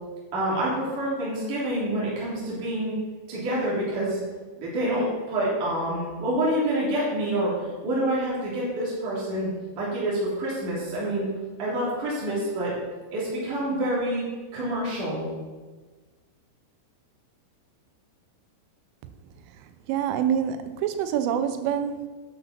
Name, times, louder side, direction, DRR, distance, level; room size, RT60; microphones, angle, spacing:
voice 1, 0.3-2.9 3.3-4.2 4.6-7.5 7.8-11.3 11.6-12.7 13.1-14.2 14.5-15.3, right 1 dB, 45° right, -7 dB, 4.4 m, -27 dB
voice 2, 19.9-22.1, right 9 dB, 85° right, 9 dB, 3.3 m, -26 dB
11.5 x 9.9 x 5.8 m, 1.4 s
omnidirectional pair, 5.6 m